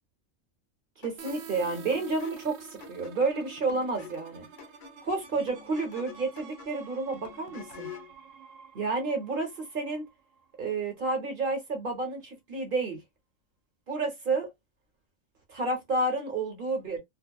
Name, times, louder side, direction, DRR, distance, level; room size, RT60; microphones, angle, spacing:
sound 1, 1.0-8.2, left 9 dB, 90° left, 1.1 m, -48 dB
voice 1, 1.0-4.5 5.0-7.9 8.7-10.1 10.6-13.0 13.9-14.5 15.5-17.0, right 3 dB, 50° right, 0.8 m, -30 dB
sound 2, 1.2-10.8, right 7 dB, 75° right, 0.9 m, -49 dB
2.7 x 2.0 x 2.2 m
omnidirectional pair, 1.4 m